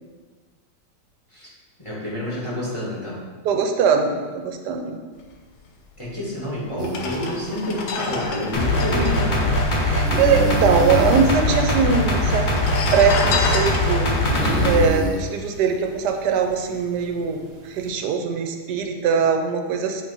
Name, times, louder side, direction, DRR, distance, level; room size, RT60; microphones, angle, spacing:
voice 1, 1.8-3.2 6.0-9.6 14.4-14.7, left 1 dB, 20° left, -7 dB, 1.3 m, -28 dB
voice 2, 3.4-5.0 9.0-9.1 9.8-12.5 12.9-14.1 14.6-20.0, right 6 dB, 80° right, 4 dB, 1.2 m, -21 dB
sound 1, 6.1-6.2 6.8-10.5 10.7-10.8 11.0-11.7 12.4-15.9 16.3-16.5, left 4 dB, 75° left, 1.3 m, -29 dB
sound 2, 6.8-17.9, right 2 dB, 55° right, 0.7 m, -33 dB
sound 3, 8.5-14.9, left 1 dB, 50° left, 0.5 m, -21 dB
8.4 x 2.8 x 4.0 m, 1.4 s
omnidirectional pair, 1.8 m